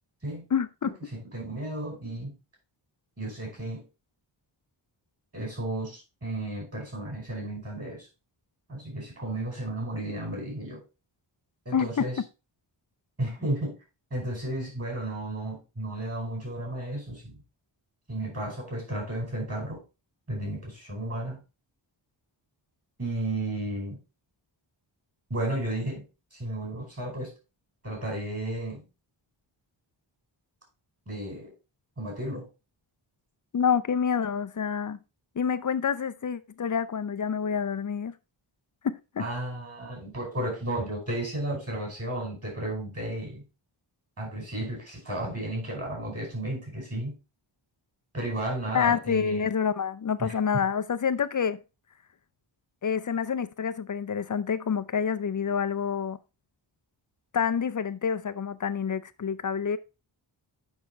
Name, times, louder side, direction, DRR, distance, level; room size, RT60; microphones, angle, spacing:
voice 1, 0.5-0.9 11.7-12.0 33.5-35.0 35.4-38.1 38.8-39.2 48.7-51.6 52.8-56.2 57.3-59.8, left 7 dB, 40° left, 0.5 m, -27 dB
voice 2, 1.1-2.3 3.2-3.8 5.3-8.1 8.7-10.8 11.6-12.2 13.2-13.7 14.1-17.4 18.1-19.8 20.3-21.4 23.0-24.0 25.3-26.0 26.3-27.3 27.8-28.8 31.1-31.5 32.0-32.5 39.2-43.4 44.2-47.1 48.1-49.5 50.2-50.3, right 1 dB, 30° right, 5.1 m, -33 dB
7.2 x 6.1 x 4.4 m
wide cardioid pair, 160°, 46 cm